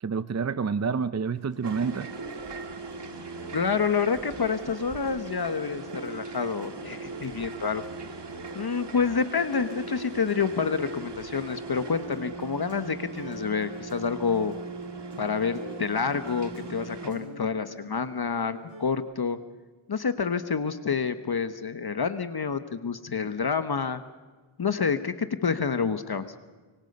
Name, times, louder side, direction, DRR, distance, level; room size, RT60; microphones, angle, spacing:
voice 1, 0.0-2.1, right 5 dB, 35° right, 14 dB, 0.6 m, -28 dB
sound 1, 1.3-19.0, right 1 dB, 90° right, 6.9 m, -47 dB
sound 2, 1.6-17.1, right 3 dB, 55° right, 2.1 m, -39 dB
voice 2, 3.5-7.8 8.5-14.5 15.2-19.4 19.9-24.0 24.6-26.3, left 5 dB, 50° left, 11 dB, 1.2 m, -28 dB
25.5 x 23.5 x 5.4 m, 1.3 s
wide cardioid pair, 90°, 48 cm